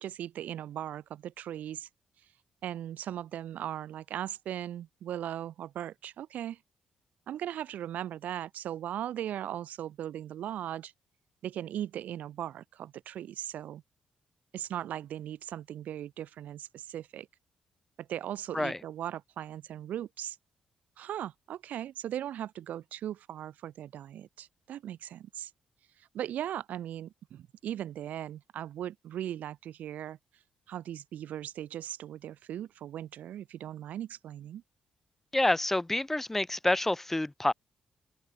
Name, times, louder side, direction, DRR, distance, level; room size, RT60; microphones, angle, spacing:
voice 1, 0.0-1.9 2.6-6.6 7.3-10.9 11.4-13.8 14.5-17.3 18.0-20.4 21.0-25.5 26.0-30.2 30.7-34.6, right 11 dB, 80° right, 6.9 m, -38 dB
voice 2, 35.3-37.5, left 1 dB, 10° left, 3.0 m, -28 dB
cardioid pair, 120°, 3 cm